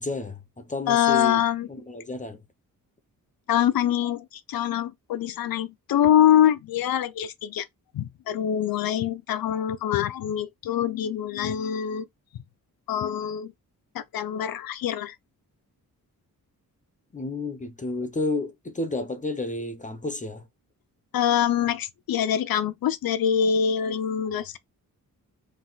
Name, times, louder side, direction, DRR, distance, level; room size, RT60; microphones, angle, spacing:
voice 1, 0.0-1.4 1.7-2.4 17.1-20.5, left 2 dB, 20° left, 0.6 m, -31 dB
voice 2, 0.9-1.7 3.5-7.7 7.9-12.1 12.9-13.5 13.9-15.2 21.1-24.6, left 9 dB, 80° left, 0.6 m, -24 dB
4.1 x 2.6 x 3.9 m
wide cardioid pair, 160°, 35 cm